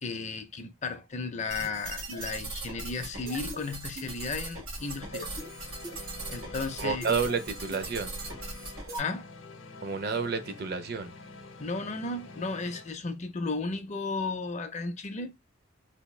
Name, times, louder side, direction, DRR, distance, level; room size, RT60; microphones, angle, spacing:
voice 1, 0.0-5.4 6.3-7.2 9.0-9.3 11.6-15.3, left 3 dB, 35° left, 0.4 m, -34 dB
sound 1, 1.5-9.0, right 2 dB, 90° right, 1.6 m, -39 dB
sound 2, 4.8-12.9, left 3 dB, 70° left, 0.7 m, -47 dB
voice 2, 6.8-8.2 9.8-11.1, right 5 dB, 50° right, 0.5 m, -30 dB
3.4 x 2.6 x 3.0 m
head